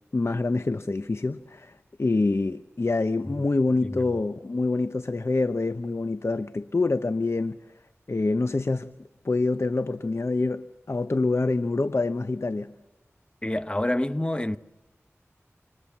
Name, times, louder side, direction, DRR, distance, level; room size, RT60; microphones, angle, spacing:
voice 1, 0.1-1.7 2.0-7.6 8.1-9.0 9.2-12.7, left 3 dB, 60° left, 0.9 m, -26 dB
voice 2, 13.4-14.6, left 1 dB, 20° left, 1.2 m, -27 dB
29.0 x 26.5 x 7.4 m
wide cardioid pair, 40°, 5 cm